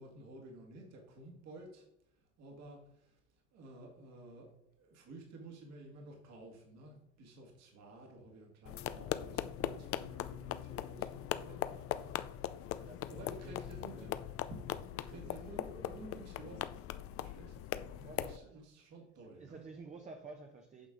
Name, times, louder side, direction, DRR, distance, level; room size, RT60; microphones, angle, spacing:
voice 1, 0.0-1.9 2.1-3.2 3.5-14.2 14.5-14.6 14.9-16.7 17.1-17.6 17.9-19.6, right 1 dB, 55° right, 2.0 m, -53 dB
sound 1, 8.7-18.4, left 12 dB, 45° left, 0.5 m, -40 dB
voice 2, 12.7-14.1 15.1-15.5 18.0-18.7 19.2-20.9, right 4 dB, 25° right, 0.8 m, -53 dB
8.6 x 5.3 x 3.8 m
cardioid pair, 115°, 31 cm